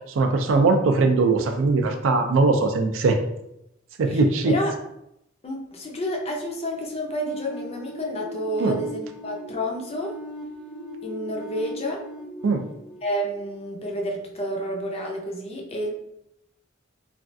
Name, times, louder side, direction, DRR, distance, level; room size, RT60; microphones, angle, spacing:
voice 1, 0.2-3.2 4.0-4.5 8.6-8.8 12.4-12.7, right 3 dB, 75° right, 6 dB, 0.4 m, -20 dB
voice 2, 5.4-10.1 11.0-12.0 13.0-15.9, equal, 30° left, 0 dB, 0.5 m, -30 dB
sound 1, 7.1-13.9, equal, 20° right, 0.5 m, -39 dB
3.2 x 2.3 x 2.5 m, 0.82 s
head